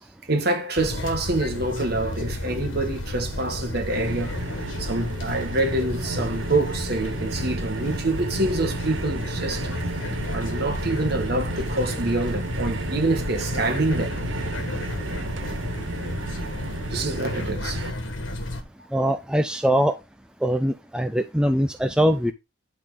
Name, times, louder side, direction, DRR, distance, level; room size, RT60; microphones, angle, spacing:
voice 1, 0.3-9.7 10.3-14.2 16.9-17.8, right 2 dB, 55° right, 1.7 m, -26 dB
sound 1, 0.8-18.6, left 1 dB, 75° left, 1.6 m, -31 dB
sound 2, 3.9-17.9, right 3 dB, 70° right, 0.8 m, -34 dB
voice 2, 18.9-19.9 20.4-22.3, equal, 5° right, 0.4 m, -22 dB
11.0 x 3.8 x 3.9 m
head